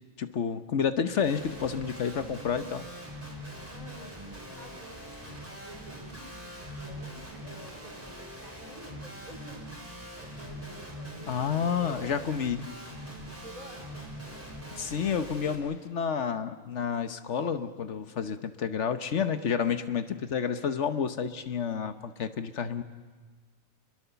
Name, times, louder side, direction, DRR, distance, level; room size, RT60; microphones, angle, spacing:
voice 1, 0.2-2.8 11.3-12.6 14.8-22.8, left 7 dB, 60° left, 10 dB, 1.2 m, -30 dB
Guitar, 1.2-15.6, equal, 10° right, 4.3 m, -43 dB
voice 2, 3.6-9.8 10.1-12.3 13.4-14.1, right 1 dB, 85° right, 1 dB, 4.0 m, -50 dB
29.5 x 22.0 x 6.9 m, 1.4 s
omnidirectional pair, 1.4 m